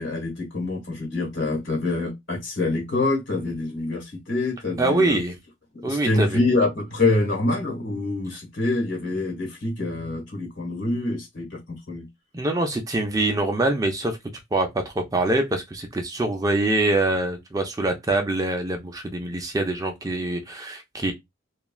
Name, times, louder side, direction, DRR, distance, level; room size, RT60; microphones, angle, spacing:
voice 1, 0.0-5.2 5.8-12.1, left 2 dB, 70° left, 1.4 m, -26 dB
voice 2, 4.8-5.3 5.8-6.4 12.3-14.2 14.5-21.1, right 2 dB, 20° right, 0.4 m, -24 dB
3.1 x 2.3 x 2.3 m
head